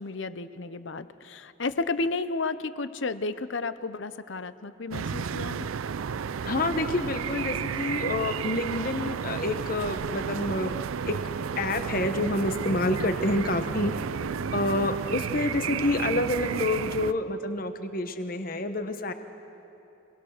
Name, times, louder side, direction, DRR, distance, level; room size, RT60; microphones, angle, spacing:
voice 1, 0.0-5.7, left 3 dB, 65° left, 13 dB, 0.8 m, -32 dB
sound 1, 4.9-17.1, right 6 dB, 90° right, 0.5 m, -32 dB
voice 2, 6.4-10.8 11.0-11.2 11.6-13.9 14.5-19.1, left 2 dB, 45° left, 8 dB, 1.1 m, -28 dB
27.5 x 19.5 x 6.6 m, 2.9 s
head